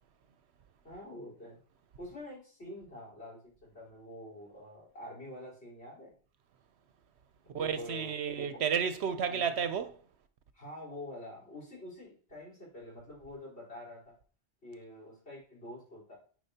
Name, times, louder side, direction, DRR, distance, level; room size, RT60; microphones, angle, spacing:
voice 1, 0.8-1.6 2.0-6.1 7.4-8.6 9.3-9.5 10.5-14.1 14.6-16.1, left 1 dB, 65° left, 4.3 m, -47 dB
voice 2, 7.5-9.9, right 7 dB, 70° right, 0.8 m, -31 dB
9.9 x 4.9 x 2.8 m
omnidirectional pair, 1.2 m